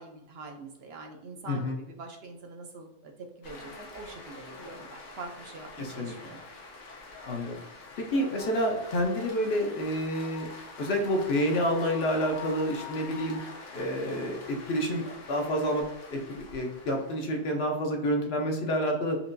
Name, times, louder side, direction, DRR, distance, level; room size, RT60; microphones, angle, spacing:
voice 1, 0.0-3.1 3.4-6.4, right 3 dB, 65° right, 3 dB, 0.8 m, -44 dB
voice 2, 1.5-1.8 5.8-6.4 7.3-7.6 8.0-10.5 10.8-13.4 13.7-15.8 16.1-19.2, equal, 60° left, 2 dB, 0.9 m, -29 dB
sound 1, 3.4-17.7, left 3 dB, 90° left, 1.2 m, -45 dB
4.4 x 2.9 x 2.6 m, 0.85 s
omnidirectional pair, 1.2 m